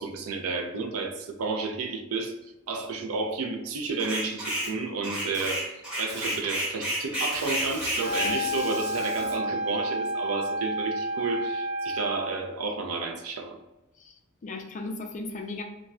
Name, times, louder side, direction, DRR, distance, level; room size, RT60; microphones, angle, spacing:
voice 1, 0.0-2.3 2.7-5.7 6.0-13.6, right 4 dB, 70° right, 4 dB, 0.4 m, -31 dB
Packing tape duct tape, 3.7-4.7 5.3-5.5 6.1-6.4 7.3-9.4, equal, 30° right, 0.8 m, -43 dB
sound 1, 4.0-4.7 5.0-8.4, equal, 5° right, 1.0 m, -31 dB
Wind instrument woodwind instrument, 8.0-12.4, equal, 55° right, 1.1 m, -30 dB
voice 2, 14.0-15.6, left 2 dB, 35° left, 3 dB, 0.3 m, -37 dB
2.2 x 2.1 x 3.5 m, 0.94 s
head